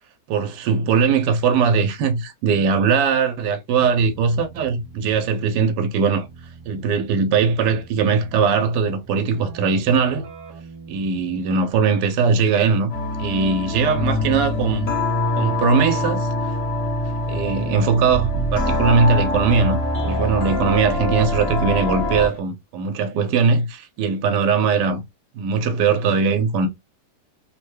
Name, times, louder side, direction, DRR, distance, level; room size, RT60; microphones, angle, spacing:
voice 1, 0.3-6.2 6.7-10.3 10.9-12.9 13.2-14.9 15.4-16.3 17.3-25.0 25.3-26.7, right 5 dB, 85° right, 1.2 m, -20 dB
Keyboard (musical), 3.8-12.2, right 4 dB, 50° right, 1.3 m, -44 dB
sound 1, 12.9-22.4, left 1 dB, 55° left, 1.3 m, -24 dB
3.3 x 2.1 x 3.1 m
omnidirectional pair, 1.8 m